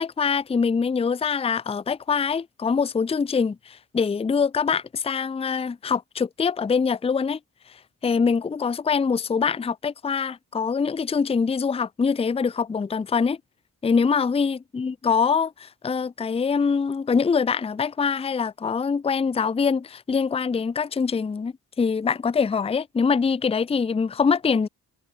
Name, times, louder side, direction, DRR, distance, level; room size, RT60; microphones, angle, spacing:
voice 1, 0.0-7.4 8.0-13.4 13.8-24.7, left 5 dB, 15° left, 0.6 m, -24 dB
wide cardioid pair, 155°, 34 cm